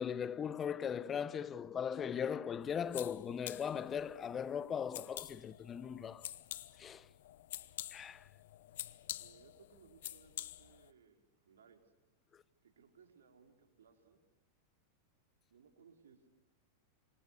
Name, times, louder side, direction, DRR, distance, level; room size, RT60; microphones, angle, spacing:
voice 1, 0.0-6.3 6.8-7.1 7.9-8.3, left 7 dB, 25° left, 0.9 m, -39 dB
sound 1, 2.6-10.9, left 13 dB, 70° left, 1.0 m, -48 dB
voice 2, 9.2-11.8 12.6-14.2 15.5-16.3, right 6 dB, 85° right, 4.4 m, -64 dB
28.0 x 24.0 x 6.6 m
hypercardioid pair, 105°, 0 cm